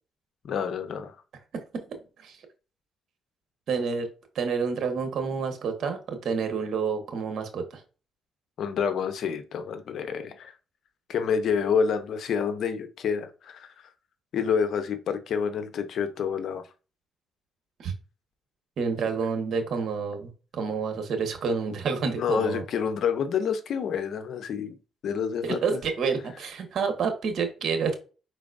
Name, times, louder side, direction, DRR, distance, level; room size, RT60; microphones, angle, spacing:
voice 1, 0.4-1.1 8.6-10.5 11.1-13.7 14.3-16.6 22.2-24.7 25.0-25.8, left 6 dB, 65° left, 0.8 m, -28 dB
voice 2, 1.5-2.4 3.7-4.1 4.3-7.8 17.8-17.9 18.8-22.6 25.4-27.9, right 5 dB, 65° right, 1.2 m, -29 dB
4.9 x 4.0 x 2.6 m
cardioid pair, 90°, 0 cm